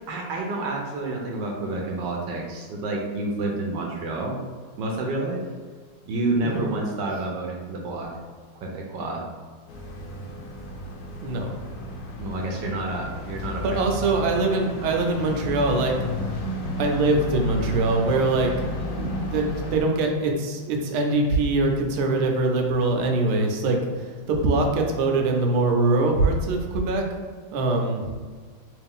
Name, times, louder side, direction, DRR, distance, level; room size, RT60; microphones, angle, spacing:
voice 1, 0.1-4.4 4.8-5.4 6.1-8.1 8.6-9.2 12.2-13.8, right 2 dB, 70° right, 0 dB, 1.1 m, -29 dB
sound 1, 9.7-19.8, left 1 dB, 75° left, 0.7 m, -32 dB
voice 2, 13.6-16.0 16.2-16.4 16.8-18.5 18.8-27.1 27.5-28.1, right 2 dB, 90° right, 2 dB, 1.5 m, -23 dB
3.4 x 3.1 x 3.5 m, 1.5 s
omnidirectional pair, 2.3 m